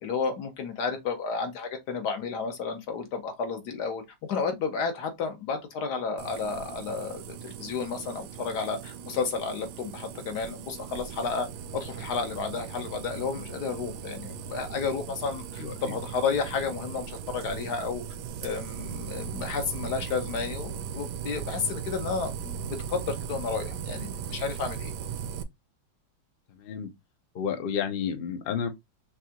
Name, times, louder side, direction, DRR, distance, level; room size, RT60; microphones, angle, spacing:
voice 1, 0.0-11.5 11.7-18.0 18.4-24.9, left 5 dB, 60° left, 1.5 m, -32 dB
sound 1, 6.2-25.4, right 7 dB, 70° right, 1.0 m, -38 dB
voice 2, 26.6-26.9 27.3-28.7, left 7 dB, 90° left, 0.5 m, -30 dB
5.7 x 2.4 x 2.9 m
omnidirectional pair, 2.1 m